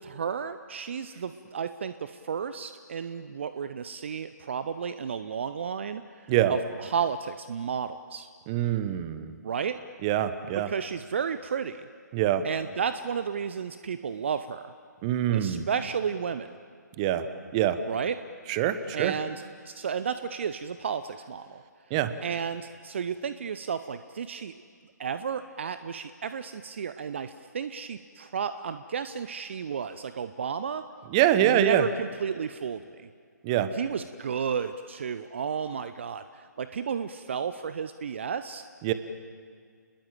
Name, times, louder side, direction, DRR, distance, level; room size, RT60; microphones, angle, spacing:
voice 1, 0.0-8.3 9.4-9.8 10.5-11.9 12.4-14.7 15.3-16.5 17.9-18.2 18.9-21.6 22.2-24.5 25.0-30.8 31.4-33.1 33.7-38.6, right 7 dB, 40° right, 12 dB, 0.8 m, -32 dB
voice 2, 8.5-9.3 10.0-10.7 12.1-12.4 15.0-15.7 17.0-17.2 17.5-17.8 18.5-19.1 21.9-22.1 31.1-31.8 33.4-33.7 38.8-38.9, right 11 dB, 20° right, 12 dB, 1.1 m, -24 dB
30.0 x 21.0 x 7.6 m, 2.1 s
figure-of-eight pair, 140°, 10 cm